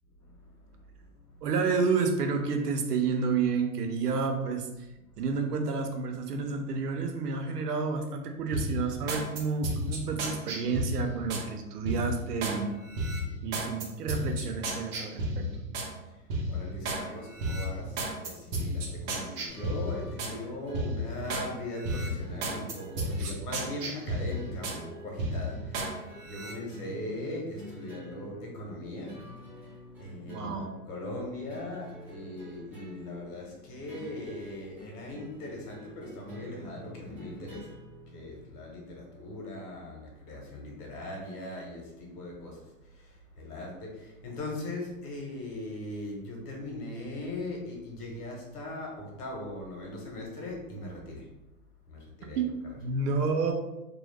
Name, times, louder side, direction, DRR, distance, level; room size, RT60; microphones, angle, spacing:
voice 1, 0.2-1.4 5.1-5.2 16.0-30.5 30.9-51.3 51.9-52.4, left 1 dB, 75° left, -1 dB, 1.2 m, -40 dB
voice 2, 1.4-4.7 5.2-12.7 13.4-15.5 23.2-23.3 30.3-30.7 52.4-52.5 52.8-53.5, right 4 dB, 85° right, 4 dB, 0.7 m, -30 dB
sound 1, 8.5-11.5 11.9-12.6 12.9-15.9 16.3-17.0 17.4-20.4 20.7-21.5 21.8-24.8 25.2-25.9 26.3-26.5, right 1 dB, 50° right, 0.8 m, -33 dB
sound 2, 19.5-38.7, equal, 5° right, 0.3 m, -49 dB
2.6 x 2.0 x 3.2 m, 0.96 s
hypercardioid pair, 125°, 46 cm